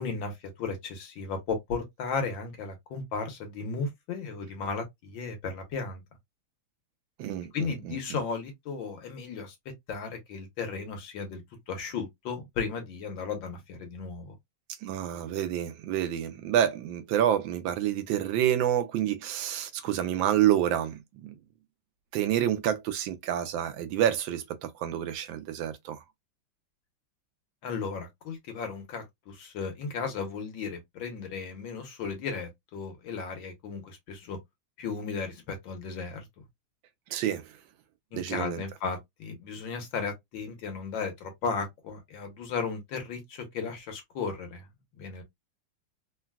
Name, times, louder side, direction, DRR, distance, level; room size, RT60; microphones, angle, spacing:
voice 1, 0.0-6.0 7.5-9.6 9.9-11.4 11.7-14.4 27.6-34.4 34.8-36.3 38.1-44.7 45.0-45.2, left 5 dB, 70° left, 1.7 m, -35 dB
voice 2, 7.2-8.0 14.8-21.3 22.1-26.0 37.1-37.5 38.1-38.6, right 11 dB, 75° right, 1.2 m, -28 dB
3.9 x 2.2 x 2.2 m
omnidirectional pair, 2.2 m